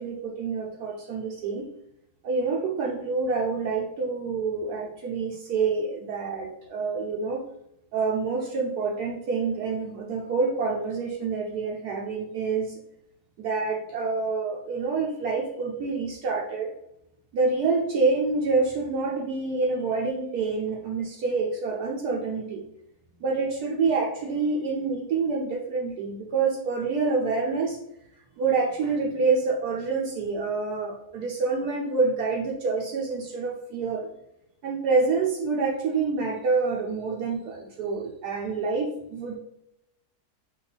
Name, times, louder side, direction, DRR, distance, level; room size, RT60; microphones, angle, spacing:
voice 1, 0.0-1.6 2.2-7.4 7.9-12.7 13.4-16.7 17.3-22.6 23.2-27.8 28.4-34.1 34.6-39.4, right 4 dB, 75° right, -1 dB, 1.2 m, -27 dB
5.2 x 2.5 x 4.0 m, 0.80 s
omnidirectional pair, 1.8 m